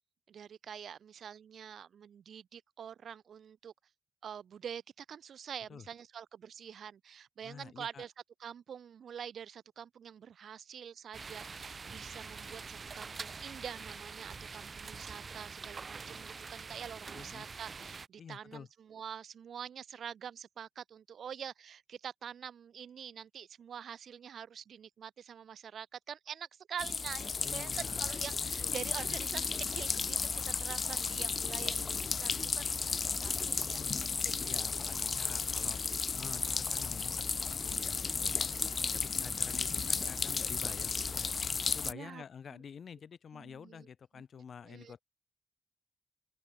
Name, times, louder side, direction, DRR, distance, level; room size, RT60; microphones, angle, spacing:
voice 1, 0.3-3.7 4.2-8.1 8.4-30.2 30.5-33.8 34.2-35.3 35.8-36.5 38.2-38.4 38.7-39.1 41.9-42.2 42.5-42.6 43.3-43.9 44.6-45.0, right 8 dB, 85° right, 5.8 m, -46 dB
voice 2, 7.4-8.0 17.1-17.5 18.2-18.7 27.4-28.1 28.6-28.7 33.3-33.6 34.3-35.8 36.1-38.3 38.8-41.3 41.6-45.0, left 7 dB, 70° left, 4.3 m, -49 dB
sound 1, 11.1-18.1, right 4 dB, 45° right, 6.1 m, -45 dB
sound 2, 26.8-41.9, left 5 dB, 50° left, 0.4 m, -34 dB
open air
wide cardioid pair, 95°, 0 cm